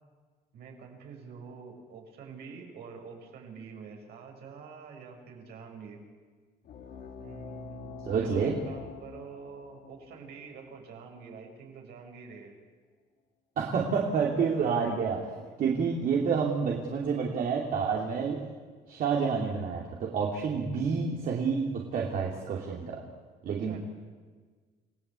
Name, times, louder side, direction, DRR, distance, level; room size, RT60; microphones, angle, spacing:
voice 1, 0.5-6.0 7.2-12.5 23.4-23.8, right 5 dB, 75° right, 2 dB, 5.9 m, -46 dB
sound 1, 6.6-11.7, left 7 dB, 70° left, 2.8 m, -47 dB
voice 2, 8.0-8.5 13.6-18.4 18.9-23.0 23.4-23.8, right 5 dB, 55° right, -2 dB, 3.1 m, -29 dB
28.5 x 16.5 x 8.4 m, 1.5 s
cardioid pair, 110°, 17 cm